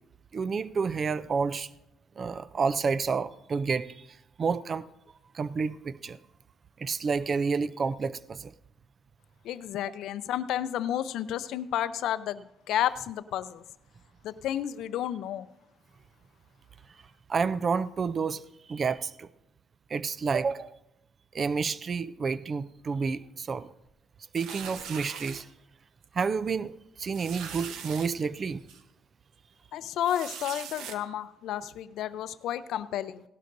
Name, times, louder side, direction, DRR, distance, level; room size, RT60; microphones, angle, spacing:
voice 1, 0.3-1.7 2.2-4.8 5.3-6.2 6.8-8.5 17.3-18.4 18.7-19.3 19.9-20.7 21.3-23.7 24.3-25.5 26.1-28.6, right 5 dB, 35° right, 15 dB, 0.4 m, -30 dB
voice 2, 9.4-13.6 14.2-15.5 29.7-33.2, left 11 dB, 75° left, 14 dB, 0.5 m, -31 dB
sound 1, 24.3-25.4 26.0-26.2 26.5-26.6 27.1-28.1 28.7-28.8 30.0-31.0, right 7 dB, 80° right, 0.9 m, -41 dB
17.0 x 12.0 x 2.6 m, 0.85 s
cardioid pair, 135°, 0 cm